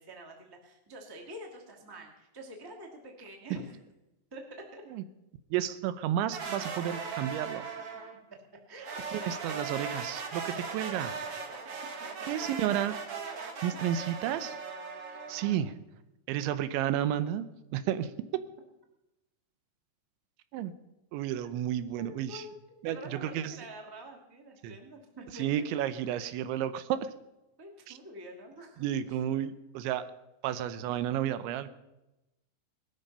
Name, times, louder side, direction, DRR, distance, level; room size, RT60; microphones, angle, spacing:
voice 1, 0.0-3.8 4.3-4.8 8.7-9.7 22.0-25.6 27.6-28.9, right 1 dB, 15° right, 1 dB, 0.7 m, -47 dB
voice 2, 5.5-7.6 9.1-11.2 12.3-13.0 13.6-14.6 15.3-15.7 16.3-17.5 17.7-18.1 20.5-20.7 21.1-22.5 22.8-23.6 24.6-24.8 25.3-27.1 27.9-28.0 28.8-30.1 30.4-31.7, right 11 dB, 80° right, 13 dB, 3.0 m, -32 dB
sound 1, 6.3-8.2 8.8-15.6, right 5 dB, 55° right, 1.6 m, -39 dB
19.5 x 13.0 x 5.6 m, 0.96 s
omnidirectional pair, 5.4 m